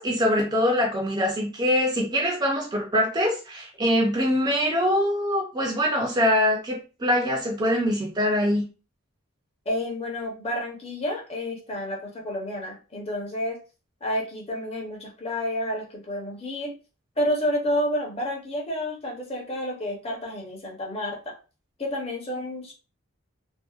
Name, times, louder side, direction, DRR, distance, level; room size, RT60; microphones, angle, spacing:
voice 1, 0.0-8.7, equal, 20° right, 0 dB, 0.4 m, -23 dB
voice 2, 9.7-13.6 14.0-16.7 17.2-21.3 21.8-22.7, left 1 dB, 30° left, -1 dB, 0.6 m, -30 dB
2.6 x 2.1 x 2.3 m, 0.34 s
head